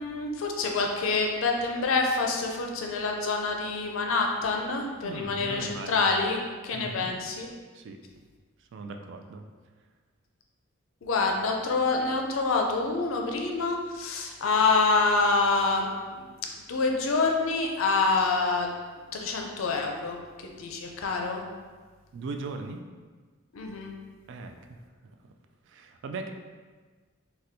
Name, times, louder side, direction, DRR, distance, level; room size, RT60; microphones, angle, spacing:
voice 1, 0.0-6.4 6.6-7.5 11.0-16.2 16.7-18.7 19.1-20.2 20.6-21.4 23.5-23.9, left 3 dB, 70° left, 1 dB, 0.5 m, -26 dB
voice 2, 5.0-6.0 6.7-7.1 7.7-8.0 8.7-9.4 22.1-22.8 24.3-24.8 25.7-26.3, right 3 dB, 60° right, 4 dB, 0.3 m, -38 dB
4.2 x 2.2 x 2.6 m, 1.4 s
head